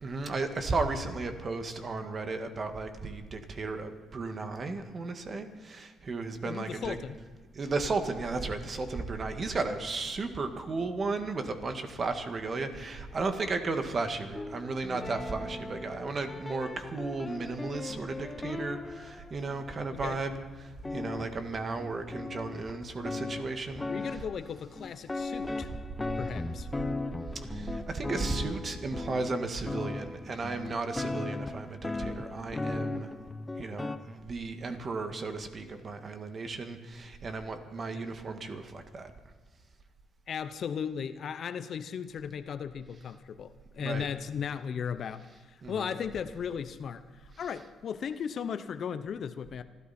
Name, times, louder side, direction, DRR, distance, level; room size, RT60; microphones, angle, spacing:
voice 1, 0.0-7.0 7.5-20.3 20.6-24.2 27.3-33.1 33.6-39.1 43.8-44.1 45.6-45.9, right 3 dB, 40° right, 6 dB, 1.8 m, -34 dB
voice 2, 6.4-7.2 19.9-20.2 23.9-25.7 26.2-26.7 37.9-38.0 40.3-49.6, left 7 dB, 60° left, 12 dB, 0.8 m, -36 dB
sound 1, 8.2-24.1, left 4 dB, 80° left, 1.6 m, -56 dB
sound 2, 14.3-19.9 20.5-20.6 20.8-34.0, left 2 dB, 15° left, 0.8 m, -38 dB
26.5 x 12.5 x 4.3 m, 1.4 s
cardioid pair, 90°, 0 cm